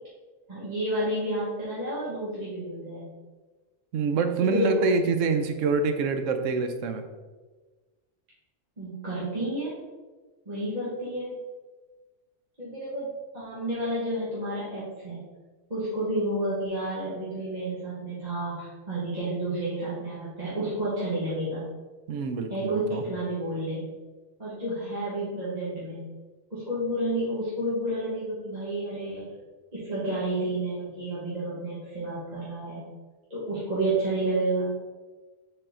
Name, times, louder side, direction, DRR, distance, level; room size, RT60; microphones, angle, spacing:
voice 1, 0.5-3.1 4.4-4.9 8.8-9.8 10.4-11.4 12.6-15.2 15.7-21.6 22.5-23.8 24.4-26.1 26.5-29.2 29.7-32.9 33.3-34.7, right 1 dB, 30° right, -10 dB, 1.6 m, -30 dB
voice 2, 3.9-7.0 22.1-23.0, right 4 dB, 75° right, 7 dB, 0.9 m, -26 dB
6.6 x 4.1 x 3.7 m, 1.3 s
omnidirectional pair, 1.4 m